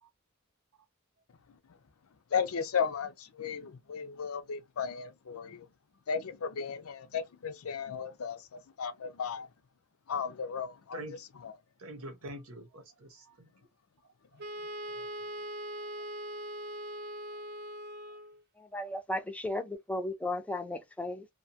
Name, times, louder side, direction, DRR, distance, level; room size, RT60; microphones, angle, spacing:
voice 1, 2.3-5.7 6.1-9.5 10.1-11.2 11.4-11.5 14.3-14.4 14.9-15.1, left 6 dB, 80° left, 0.5 m, -35 dB
voice 2, 11.8-13.5 14.0-14.1 17.3-17.4, right 1 dB, 85° right, 0.9 m, -45 dB
Wind instrument woodwind instrument, 14.4-18.4, right 1 dB, 50° right, 0.6 m, -41 dB
voice 3, 18.6-21.3, left 1 dB, 5° left, 0.4 m, -35 dB
2.8 x 2.2 x 2.7 m
head